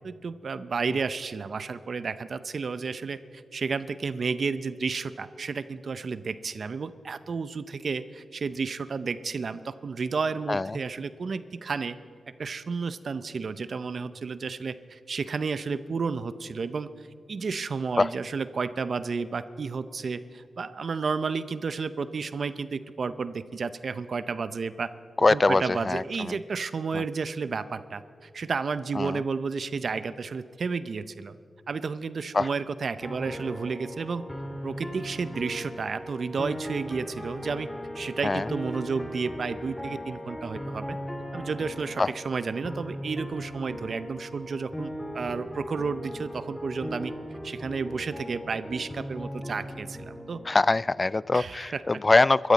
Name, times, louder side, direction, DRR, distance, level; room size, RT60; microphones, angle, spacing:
voice 1, 0.0-3.2 3.5-12.0 12.4-16.9 17.3-24.9 25.3-31.4 31.7-34.2 34.6-37.7 37.9-41.0 41.3-47.1 47.4-50.4 51.3-51.8, right 5 dB, 60° right, 13 dB, 0.6 m, -32 dB
voice 2, 10.5-10.8 18.0-18.1 25.2-26.4 26.9-27.0 28.9-29.2 32.3-32.5 38.2-38.5 42.0-42.1 50.4-52.5, left 3 dB, 30° left, 21 dB, 0.3 m, -23 dB
sound 1, 33.0-50.7, equal, 15° left, 2.0 m, -38 dB
23.0 x 14.0 x 4.1 m, 2.4 s
cardioid pair, 75°, 0 cm